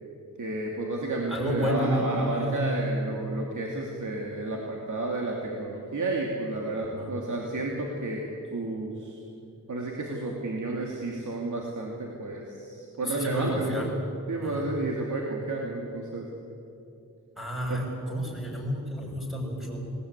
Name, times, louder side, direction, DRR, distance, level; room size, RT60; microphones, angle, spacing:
voice 1, 0.4-8.2 8.5-9.2 9.7-13.9 14.3-16.3 17.7-17.8, right 2 dB, 70° right, -1 dB, 2.8 m, -31 dB
voice 2, 1.3-2.8 6.9-7.1 13.1-13.9 14.4-14.6 17.4-19.9, equal, ahead, -1 dB, 6.9 m, -30 dB
20.0 x 19.0 x 9.7 m, 2.6 s
wide cardioid pair, 90°, 31 cm